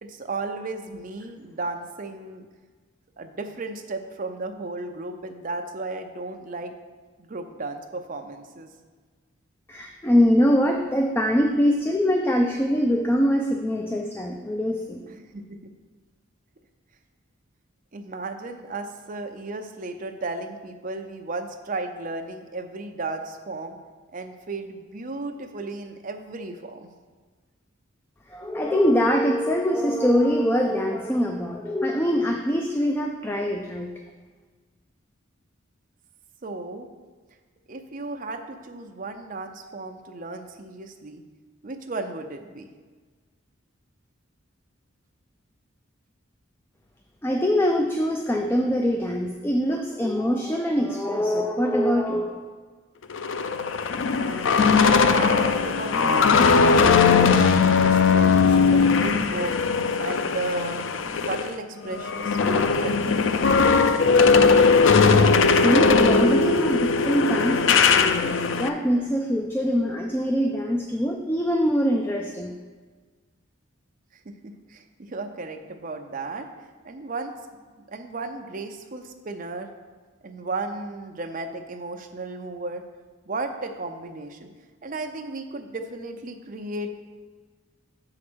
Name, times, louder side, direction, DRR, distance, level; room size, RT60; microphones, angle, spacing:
voice 1, 0.0-2.5 3.2-6.7 7.2-8.7 15.1-15.7 17.9-23.8 24.1-26.9 36.4-36.9 37.7-41.2 41.6-42.7 54.1-54.8 55.1-57.0 57.8-59.5 60.0-60.8 61.3-63.5 74.2-76.5 76.8-77.3 77.8-79.7 80.2-82.8 83.3-84.5 84.8-87.0, right 3 dB, 40° right, 5 dB, 0.6 m, -34 dB
voice 2, 9.7-15.1 28.3-33.9 47.2-52.5 65.5-72.5, equal, 10° left, 2 dB, 0.4 m, -23 dB
sound 1, 53.1-61.5 61.8-68.7, left 5 dB, 70° left, 0.4 m, -19 dB
7.4 x 4.9 x 6.2 m, 1.4 s
head